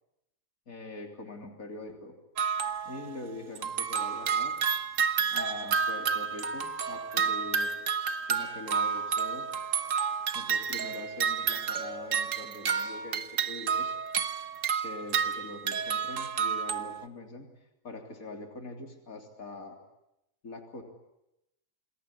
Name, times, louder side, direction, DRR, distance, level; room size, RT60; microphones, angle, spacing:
voice 1, 0.7-2.2 2.8-4.5 5.3-7.7 8.3-9.5 10.3-13.9 14.8-17.5 17.8-19.8 20.4-20.8, left 2 dB, 75° left, 3 dB, 3.8 m, -43 dB
sound 1, 2.4-3.2 3.6-17.0, right 6 dB, 65° right, 1.6 m, -30 dB
27.5 x 21.0 x 10.0 m, 0.87 s
omnidirectional pair, 1.5 m